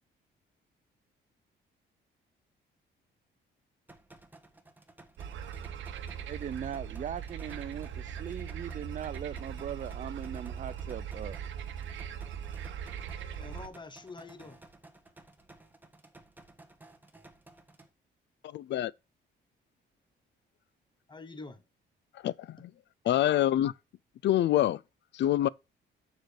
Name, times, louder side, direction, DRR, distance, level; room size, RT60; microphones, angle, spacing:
sound 1, 3.9-17.9, right 2 dB, 10° right, 1.4 m, -56 dB
sound 2, 5.2-13.7, right 8 dB, 75° right, 1.0 m, -40 dB
voice 1, 6.3-11.4, right 8 dB, 40° right, 0.5 m, -39 dB
voice 2, 12.5-14.7 21.1-21.6 22.6-22.7, left 3 dB, 25° left, 1.3 m, -48 dB
voice 3, 18.5-18.9 22.2-22.6 23.1-23.7 24.2-24.8 25.1-25.5, left 12 dB, 65° left, 0.4 m, -25 dB
6.4 x 4.9 x 6.6 m
cardioid pair, 90°, 20 cm